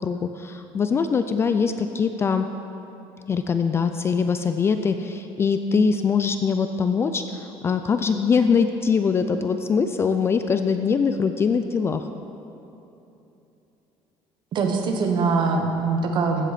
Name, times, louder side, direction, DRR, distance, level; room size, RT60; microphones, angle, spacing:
voice 1, 0.0-2.5 3.3-12.0, left 5 dB, 25° left, 8 dB, 0.3 m, -22 dB
voice 2, 14.5-16.5, right 4 dB, 45° right, 3 dB, 1.2 m, -23 dB
15.0 x 8.1 x 4.2 m, 2.9 s
cardioid pair, 165°, 11 cm